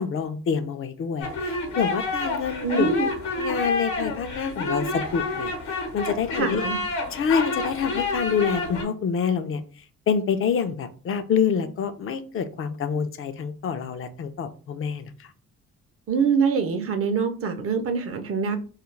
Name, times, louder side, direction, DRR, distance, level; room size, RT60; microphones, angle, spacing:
voice 1, 0.0-2.9 3.3-6.6 7.1-9.6 10.1-15.3, left 6 dB, 45° left, 9 dB, 0.4 m, -27 dB
sound 1, 1.2-8.8, left 3 dB, 75° left, 0.9 m, -29 dB
voice 2, 2.6-3.1 6.4-6.8 16.1-18.6, right 5 dB, 50° right, 7 dB, 0.6 m, -24 dB
2.3 x 2.2 x 3.1 m, 0.39 s
cardioid pair, 90°, 30 cm